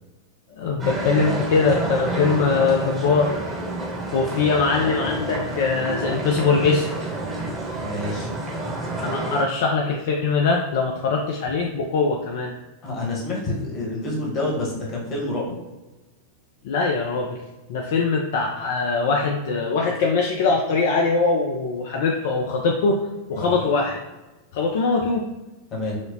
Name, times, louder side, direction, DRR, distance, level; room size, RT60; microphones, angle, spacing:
voice 1, 0.6-3.4 4.1-6.9 9.0-12.5 16.6-17.4 17.7-23.0 23.3-24.0 24.5-25.2, left 4 dB, 55° left, 1 dB, 0.3 m, -22 dB
sound 1, 0.8-9.4, right 2 dB, 20° right, 0.9 m, -29 dB
voice 2, 7.8-8.3 12.8-15.5 23.4-23.5 25.7-26.0, left 2 dB, 35° left, -3 dB, 1.1 m, -28 dB
4.8 x 2.0 x 2.6 m, 1.1 s
figure-of-eight pair, 90°, 0 cm